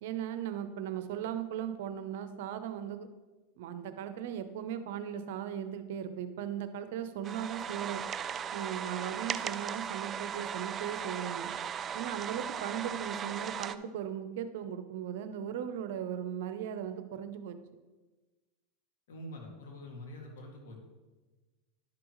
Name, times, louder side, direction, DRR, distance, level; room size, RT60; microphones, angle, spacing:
voice 1, 0.0-3.1 3.6-8.0 8.5-11.5 11.9-17.6, right 9 dB, 70° right, 10 dB, 0.7 m, -38 dB
sound 1, 7.2-13.7, right 8 dB, 30° right, 0.3 m, -37 dB
voice 2, 19.1-20.9, left 1 dB, 80° left, 0 dB, 2.1 m, -45 dB
11.0 x 6.1 x 3.1 m, 1.2 s
supercardioid pair, 120°, 0 cm